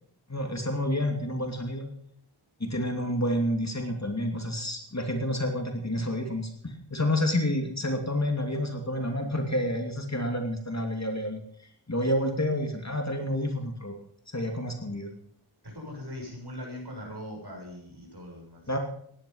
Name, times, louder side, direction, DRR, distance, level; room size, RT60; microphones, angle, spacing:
voice 1, 0.3-1.9 2.6-11.4 11.9-13.9 14.3-15.1 18.7-18.8, left 1 dB, 35° left, 3 dB, 2.7 m, -29 dB
voice 2, 15.6-18.7, left 1 dB, 50° right, 0 dB, 6.8 m, -41 dB
17.0 x 11.0 x 5.6 m, 0.64 s
wide cardioid pair, 55°, 49 cm